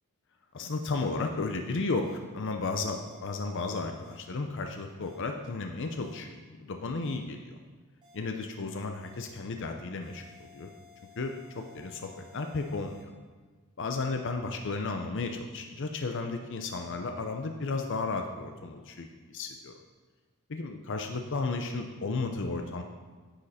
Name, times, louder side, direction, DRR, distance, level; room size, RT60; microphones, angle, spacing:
voice 1, 0.5-7.6 8.1-10.7 11.2-13.1 13.8-19.8 20.5-22.8, left 3 dB, 55° left, 4 dB, 0.6 m, -34 dB
sound 1, 2.0-2.2 3.0-3.2 4.0-4.2 5.0-5.2 6.0-6.2 7.0-7.2 8.0-8.2 9.0-9.2 10.0-13.0, left 6 dB, 20° right, 2.4 m, -56 dB
10.0 x 6.5 x 4.2 m, 1.4 s
head